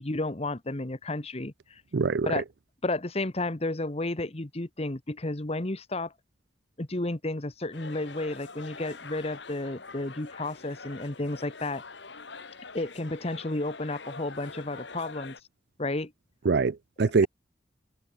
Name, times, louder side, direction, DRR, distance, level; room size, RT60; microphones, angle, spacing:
voice 1, 0.0-1.8 2.2-2.4 2.8-6.1 6.8-11.8 12.7-15.3 15.8-16.1, left 2 dB, 35° left, 1.3 m, -32 dB
voice 2, 1.9-2.4 16.4-17.3, right 4 dB, 65° right, 0.5 m, -24 dB
sound 1, 7.7-15.4, left 4 dB, 75° left, 2.7 m, -45 dB
head